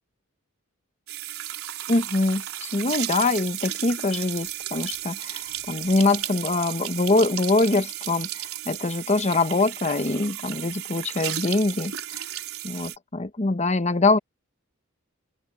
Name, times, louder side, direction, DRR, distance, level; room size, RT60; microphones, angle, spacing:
sound 1, 1.1-13.0, right 13 dB, 85° right, 4.2 m, -34 dB
voice 1, 1.9-12.2 12.6-14.2, left 2 dB, 30° left, 0.9 m, -24 dB
open air
head